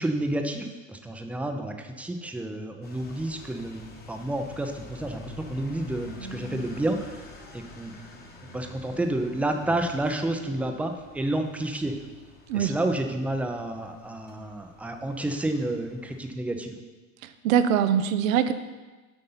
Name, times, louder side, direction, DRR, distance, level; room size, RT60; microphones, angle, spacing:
voice 1, 0.0-7.2 7.5-8.2 8.5-12.0 12.5-16.8, right 1 dB, 5° right, 5 dB, 0.6 m, -30 dB
sound 1, 2.8-16.3, left 2 dB, 25° left, 1.2 m, -47 dB
voice 2, 17.4-18.5, right 9 dB, 75° right, 11 dB, 0.7 m, -22 dB
7.9 x 5.4 x 5.6 m, 1.2 s
hypercardioid pair, 110°, 41 cm